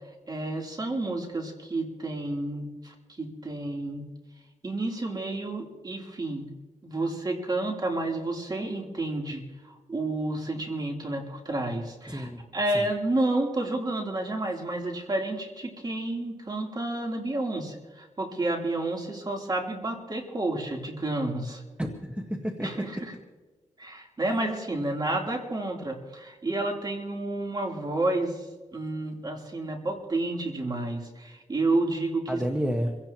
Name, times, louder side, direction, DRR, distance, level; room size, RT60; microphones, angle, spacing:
voice 1, 0.3-4.1 4.6-6.5 6.8-21.6 22.6-23.1 23.8-28.5 28.7-32.4, right 2 dB, 30° right, 0 dB, 3.4 m, -30 dB
voice 2, 12.1-12.4 12.7-12.8 21.8-22.8 32.3-33.0, equal, 10° right, 2 dB, 1.5 m, -30 dB
26.0 x 17.0 x 3.0 m, 1.2 s
cardioid pair, 80°, 13 cm